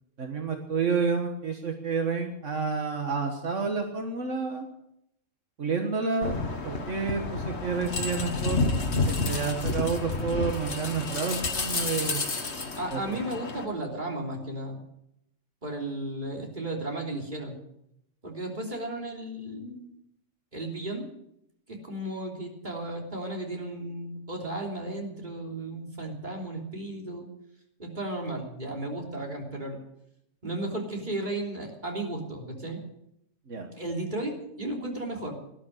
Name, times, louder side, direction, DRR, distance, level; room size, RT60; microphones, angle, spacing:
voice 1, 0.2-4.7 5.6-8.7 9.1-12.2 12.9-13.2 33.5-33.7, right 5 dB, 75° right, 3 dB, 1.8 m, -30 dB
sound 1, 6.2-13.6, left 3 dB, 60° left, 1.9 m, -30 dB
voice 2, 12.7-14.8 15.6-17.6 18.2-19.9 20.5-21.0 21.7-27.3 27.8-29.8 30.4-32.8 33.7-35.4, right 1 dB, 35° right, 0 dB, 3.5 m, -34 dB
19.0 x 11.5 x 6.5 m, 0.78 s
omnidirectional pair, 1.3 m